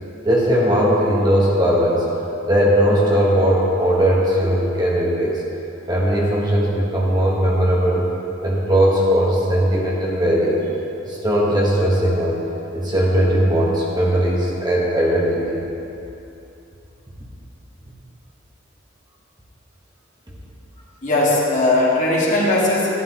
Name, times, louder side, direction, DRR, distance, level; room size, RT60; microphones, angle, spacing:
voice 1, 0.2-2.0 2.5-5.4 5.9-8.0 8.4-10.7 11.1-12.4 12.7-15.6, equal, 20° right, -5 dB, 1.3 m, -18 dB
voice 2, 21.0-23.0, left 2 dB, 40° left, -5 dB, 1.9 m, -18 dB
11.5 x 11.5 x 3.0 m, 2.9 s
head